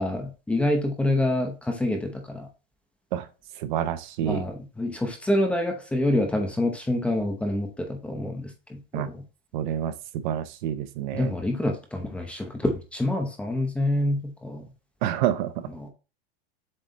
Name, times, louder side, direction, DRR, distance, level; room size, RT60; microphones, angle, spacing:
voice 1, 0.0-2.5 4.2-9.2 11.1-14.7 15.8-15.9, left 1 dB, 5° left, 3 dB, 0.7 m, -27 dB
voice 2, 3.6-4.4 8.9-9.1 9.5-11.3 15.0-15.7, right 11 dB, 50° right, 11 dB, 0.7 m, -28 dB
7.7 x 3.1 x 4.0 m, 0.31 s
supercardioid pair, 165°, 31 cm